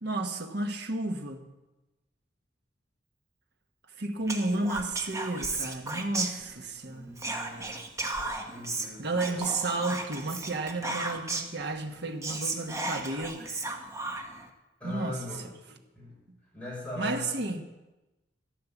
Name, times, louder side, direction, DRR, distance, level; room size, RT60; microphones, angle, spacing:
voice 1, 0.0-1.4 4.0-7.1 9.0-13.6 14.8-15.2 17.0-17.6, right 2 dB, 60° right, 5 dB, 1.3 m, -32 dB
Whispering, 4.3-6.8 7.2-11.6 11.9-12.0 12.2-14.5, right 2 dB, 15° right, 1.1 m, -34 dB
voice 2, 6.9-7.8 8.1-9.4 14.8-15.4 15.7-16.2 16.5-17.3, left 2 dB, 5° left, -6 dB, 6.3 m, -41 dB
13.5 x 9.7 x 7.2 m, 1.1 s
head